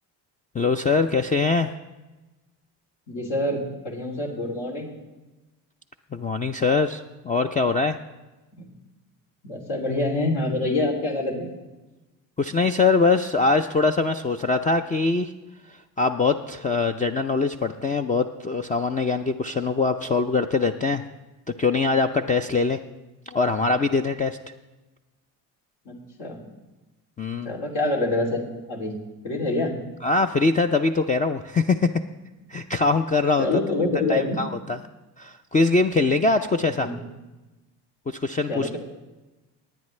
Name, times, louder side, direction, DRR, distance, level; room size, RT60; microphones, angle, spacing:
voice 1, 0.5-1.7 6.1-8.0 12.4-15.3 16.0-21.0 21.6-22.8 23.3-24.4 27.2-27.5 30.0-31.9 32.5-33.5 34.1-34.8 35.2-36.9 38.1-38.8, left 3 dB, 15° left, 7 dB, 0.4 m, -22 dB
voice 2, 3.1-4.9 8.6-8.7 9.4-11.5 25.8-26.4 27.4-28.9 29.2-29.7 33.4-34.4 36.8-37.0 38.5-38.8, left 2 dB, 70° left, -2 dB, 3.0 m, -26 dB
19.0 x 9.2 x 3.2 m, 1.1 s
hypercardioid pair, 70°, 50 cm